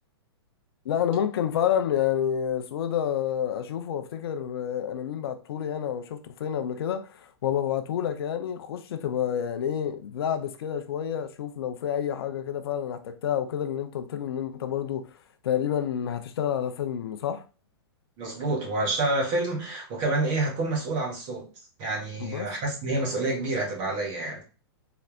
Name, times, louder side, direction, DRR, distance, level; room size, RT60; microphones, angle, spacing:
voice 1, 0.8-15.1 15.4-17.4 22.2-22.5, left 9 dB, 65° left, 0.7 m, -29 dB
voice 2, 18.2-21.5 21.8-24.4, right 2 dB, 40° right, 2.4 m, -28 dB
4.3 x 4.1 x 2.5 m
hypercardioid pair, 135°, 14 cm